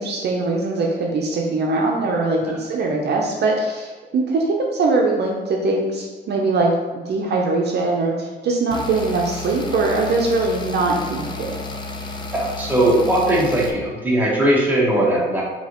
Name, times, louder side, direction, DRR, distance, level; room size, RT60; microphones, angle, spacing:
voice 1, 0.0-11.5, right 3 dB, 60° right, 0 dB, 0.6 m, -21 dB
sound 1, 8.7-13.7, left 2 dB, 25° left, 0.5 m, -32 dB
voice 2, 12.3-15.4, right 1 dB, 10° right, -5 dB, 1.3 m, -19 dB
5.3 x 2.8 x 3.0 m, 1.3 s
cardioid pair, 90°, 20 cm